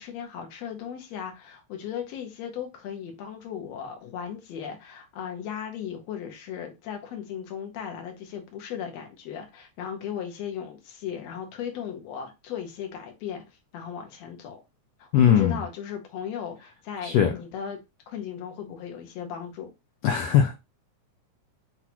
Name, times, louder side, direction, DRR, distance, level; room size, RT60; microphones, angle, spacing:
voice 1, 0.0-13.4 13.7-14.6 15.0-17.8 18.1-19.7, left 8 dB, 70° left, 1.9 m, -37 dB
voice 2, 15.1-15.6 17.0-17.3 20.0-20.5, left 9 dB, 85° left, 1.4 m, -20 dB
5.9 x 2.4 x 2.8 m
omnidirectional pair, 3.5 m